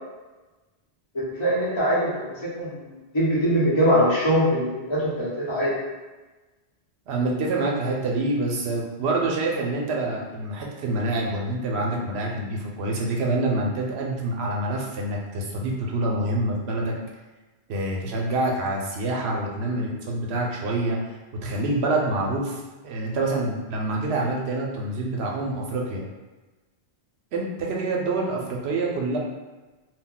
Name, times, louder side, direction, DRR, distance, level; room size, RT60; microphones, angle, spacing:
voice 1, 1.1-2.9 3.1-5.7, equal, 30° left, -9 dB, 0.9 m, -22 dB
voice 2, 7.1-16.9 17.7-21.0 21.4-26.0 27.3-29.2, right 2 dB, 80° right, -1 dB, 0.8 m, -26 dB
2.3 x 2.1 x 3.8 m, 1.2 s
omnidirectional pair, 1.1 m